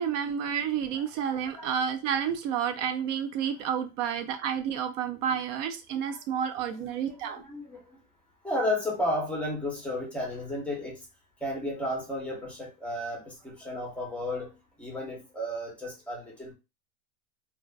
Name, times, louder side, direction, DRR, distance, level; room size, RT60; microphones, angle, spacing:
voice 1, 0.0-7.4, right 8 dB, 70° right, 0.5 m, -30 dB
voice 2, 0.9-1.8 6.1-6.2 6.8-8.0 8.4-11.1 11.4-16.5, left 1 dB, 5° left, 0.8 m, -33 dB
2.4 x 2.4 x 2.3 m
supercardioid pair, 140°, 39 cm